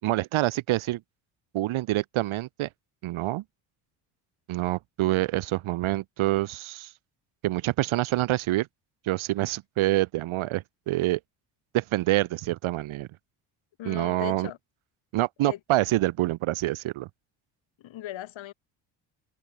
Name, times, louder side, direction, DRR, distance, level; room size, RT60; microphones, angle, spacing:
voice 1, 0.0-1.0 1.5-2.7 3.0-3.4 4.5-6.9 7.4-8.7 9.1-11.2 11.7-13.1 13.9-14.5 15.1-17.1, right 16 dB, 75° right, 5.3 m, -26 dB
voice 2, 13.8-14.6 15.4-15.6 17.8-18.5, left 13 dB, 65° left, 5.6 m, -38 dB
supercardioid pair, 65°, 49 cm